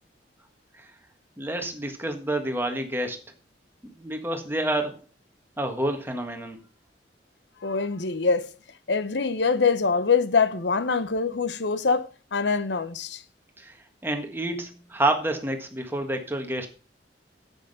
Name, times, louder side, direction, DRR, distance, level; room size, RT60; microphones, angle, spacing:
voice 1, 1.4-3.2 3.8-5.0 5.6-6.6 13.6-13.7 14.0-16.7, right 1 dB, 15° right, 1.6 m, -28 dB
voice 2, 7.6-8.5 8.9-13.2, left 4 dB, 80° left, 0.8 m, -24 dB
9.8 x 8.3 x 5.4 m
head